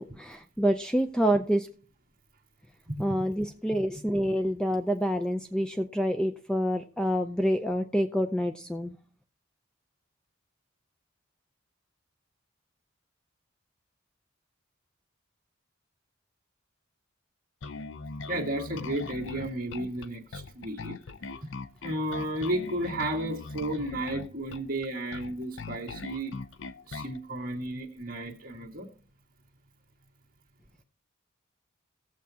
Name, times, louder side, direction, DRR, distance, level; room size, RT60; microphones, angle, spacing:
voice 1, 0.0-1.7 3.0-9.0, equal, 5° left, 6 dB, 0.4 m, -27 dB
Bass guitar, 17.6-27.2, left 3 dB, 65° left, 0.5 m, -40 dB
voice 2, 18.3-21.0 21.8-26.3 26.9-28.9, right 1 dB, 45° right, 0 dB, 1.8 m, -33 dB
18.5 x 7.3 x 2.8 m, 0.41 s
head